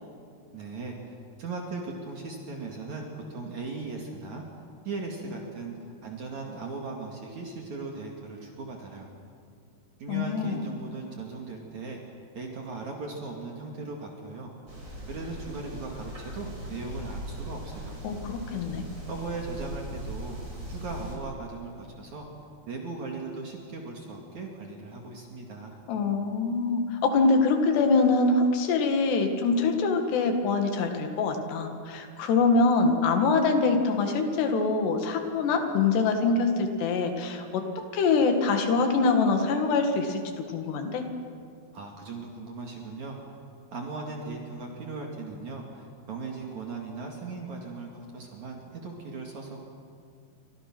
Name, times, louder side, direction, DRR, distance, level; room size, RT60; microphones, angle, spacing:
voice 1, 0.5-4.4 4.8-9.1 10.0-12.0 12.3-14.5 15.1-18.0 19.1-20.4 20.7-22.3 22.7-25.7 41.7-43.2 43.7-49.7, right 3 dB, 50° right, 0 dB, 3.2 m, -38 dB
voice 2, 10.1-10.6 18.0-18.9 25.9-41.1, left 4 dB, 85° left, 5 dB, 4.1 m, -24 dB
sound 1, 14.7-21.2, equal, 25° right, 5.9 m, -39 dB
29.0 x 25.0 x 6.2 m, 2.3 s
omnidirectional pair, 4.7 m